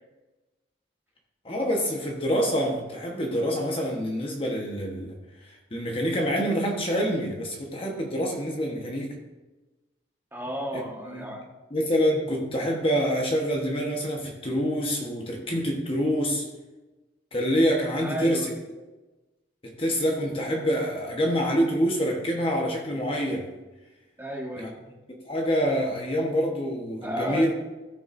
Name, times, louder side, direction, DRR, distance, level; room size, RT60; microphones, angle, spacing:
voice 1, 1.4-5.2 5.4-9.1 11.0-11.2 11.7-16.5 17.3-18.5 19.6-23.5 24.6-24.7 25.1-27.5, equal, 30° left, 1 dB, 1.2 m, -26 dB
voice 2, 10.3-11.4 18.0-18.5 24.2-24.8 27.0-27.5, equal, 10° right, -2 dB, 1.5 m, -32 dB
14.5 x 6.9 x 2.6 m, 1.1 s
head